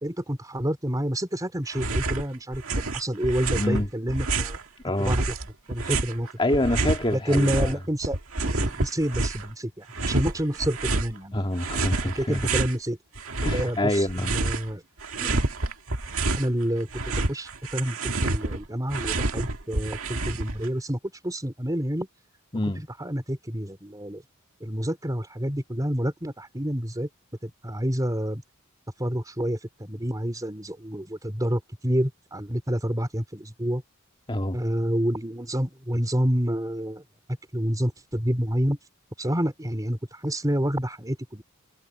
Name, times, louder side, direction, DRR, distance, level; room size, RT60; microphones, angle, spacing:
voice 1, 0.0-4.6 5.0-5.4 5.7-6.3 7.1-8.2 8.4-11.5 12.2-13.0 13.5-14.8 15.2-15.5 16.3-22.1 22.8-24.2 24.6-27.1 27.4-28.4 29.0-33.8 34.5-37.0 37.5-38.8 39.2-41.4, equal, 15° right, 3.6 m, -28 dB
sound 1, 1.7-2.2 2.5-4.6 5.0-7.7 8.0-9.5 9.9-11.1 11.6-12.7 13.1-14.7 15.0-16.5 16.8-20.7, right 2 dB, 65° right, 2.2 m, -28 dB
voice 2, 3.5-3.9 4.8-5.2 6.4-7.7 11.3-12.4 13.4-14.4 22.5-22.9 34.3-34.6, left 1 dB, 25° left, 1.9 m, -26 dB
head